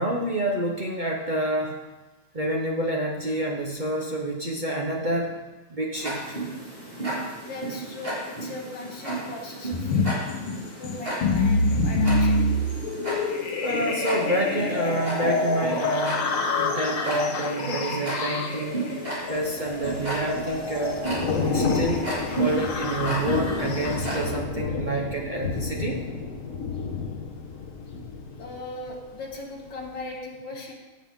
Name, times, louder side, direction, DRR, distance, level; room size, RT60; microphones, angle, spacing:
voice 1, 0.0-1.8 2.3-5.3 5.7-6.4 13.6-16.3 16.6-18.8 19.3-21.1 21.4-22.1 22.4-26.0, right 1 dB, 40° right, -1 dB, 0.6 m, -28 dB
Tick-tock, 5.9-24.3, right 2 dB, 25° right, 3.8 m, -34 dB
voice 2, 7.4-10.2 10.8-12.4 28.4-30.7, left 2 dB, 60° left, -1 dB, 2.4 m, -38 dB
sound 1, 9.7-24.4, left 3 dB, 85° left, 2.0 m, -27 dB
Thunder / Rain, 19.4-29.3 29.6-29.9, left 4 dB, 45° left, 1.3 m, -31 dB
16.0 x 7.6 x 3.7 m, 1.1 s
omnidirectional pair, 2.3 m